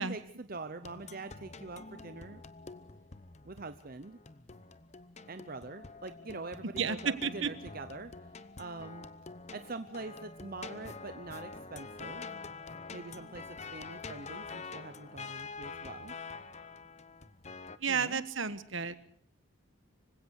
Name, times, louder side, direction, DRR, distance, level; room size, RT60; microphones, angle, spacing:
voice 1, 0.0-2.4 3.4-4.2 5.3-8.1 8.6-9.1 9.5-12.3 12.9-16.2 17.9-18.2, right 3 dB, 45° right, 9 dB, 0.9 m, -44 dB
sound 1, 0.8-17.8, left 4 dB, 30° left, 0.8 m, -46 dB
voice 2, 6.6-7.5 17.8-18.9, right 5 dB, 65° right, 13 dB, 1.4 m, -32 dB
25.5 x 16.5 x 6.5 m, 0.62 s
head